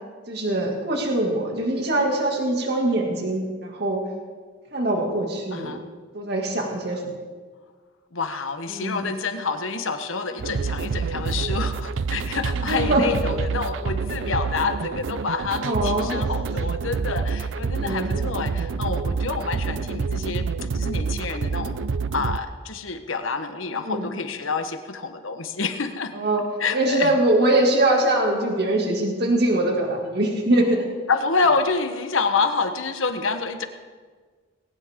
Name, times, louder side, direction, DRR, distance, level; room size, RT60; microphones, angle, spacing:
voice 1, 0.3-4.0 4.7-5.8 6.1-7.1 8.7-9.0 12.5-13.0 15.5-16.5 17.7-18.2 23.7-24.1 26.1-26.4 26.7-30.8, right 1 dB, 50° right, 0 dB, 2.4 m, -23 dB
voice 2, 5.5-5.8 8.1-20.5 20.7-21.8 22.1-26.1 26.6-27.2 31.1-33.7, left 4 dB, 80° left, 7 dB, 1.2 m, -27 dB
sound 1, 10.4-22.4, right 5 dB, 75° right, 0.5 m, -27 dB
19.5 x 17.5 x 3.8 m, 1.5 s
head